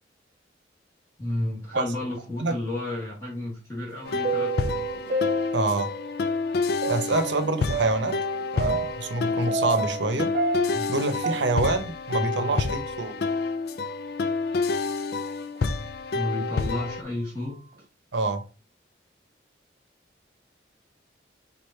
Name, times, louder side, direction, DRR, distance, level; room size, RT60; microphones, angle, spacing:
voice 1, 1.2-4.8 10.7-11.0 12.1-12.6 16.1-17.6, left 1 dB, 15° left, 1.5 m, -32 dB
sound 1, 3.9-6.1 6.8-10.1 10.3-12.7 13.0-13.1 13.9-14.0 14.7-14.9 15.6-15.7 16.5-16.8, right 3 dB, 45° right, 0.4 m, -31 dB
sound 2, 4.0-17.0, left 4 dB, 60° left, 0.4 m, -29 dB
voice 2, 5.5-5.9 6.9-8.2 8.5-10.3 10.9-13.2 18.1-18.4, right 2 dB, 85° right, 0.8 m, -26 dB
4.8 x 2.5 x 4.3 m
head